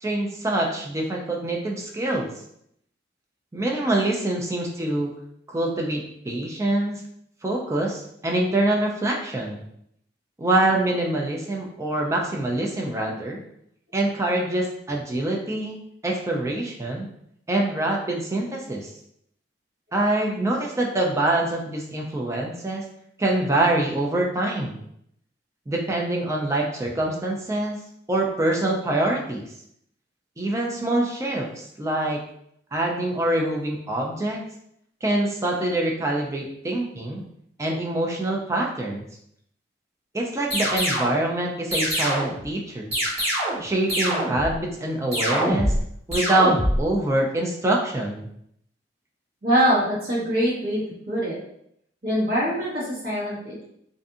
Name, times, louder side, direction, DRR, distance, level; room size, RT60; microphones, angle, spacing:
voice 1, 0.0-2.3 3.5-5.1 5.5-7.0 7.4-9.6 10.4-13.4 13.9-15.8 16.0-17.1 17.5-18.9 19.9-22.8 23.2-24.8 25.7-27.8 28.1-29.4 30.4-32.2 32.7-34.4 35.0-37.2 37.6-39.0 40.1-42.9 43.6-45.7 46.1-48.3, right 1 dB, 15° right, -1 dB, 0.4 m, -25 dB
sound 1, 40.5-41.2 41.7-42.4 42.9-43.6 43.9-44.5 45.1-45.8 46.1-46.8, equal, 35° right, 1.4 m, -24 dB
voice 2, 49.4-50.8 51.1-51.4 52.0-53.6, equal, 55° right, -7 dB, 1.1 m, -23 dB
2.5 x 2.5 x 2.4 m, 0.72 s
head